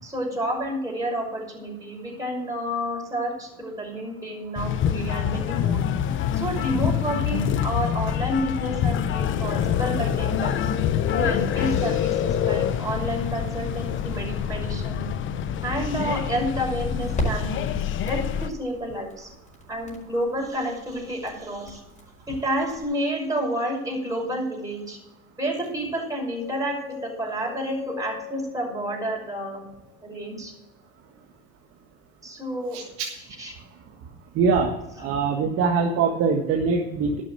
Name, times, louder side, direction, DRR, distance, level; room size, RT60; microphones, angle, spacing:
voice 1, 0.0-5.8 6.3-10.6 11.2-15.1 15.6-17.8 18.1-19.3 19.7-21.8 22.3-25.0 25.4-29.6 30.0-30.5 32.2-32.8 33.4-33.6 35.0-35.1 35.4-35.5, equal, 10° right, -1 dB, 5.6 m, -30 dB
sound 1, 4.6-18.5, left 9 dB, 45° left, 1.0 m, -26 dB
sound 2, 16.9-22.8, left 1 dB, 25° left, 5.1 m, -37 dB
sound 3, 26.1-30.2, left 12 dB, 90° left, 2.0 m, -41 dB
voice 2, 34.3-34.7 35.0-37.2, right 5 dB, 50° right, 1 dB, 1.7 m, -22 dB
11.5 x 7.0 x 7.9 m, 0.96 s
hypercardioid pair, 85°, 29 cm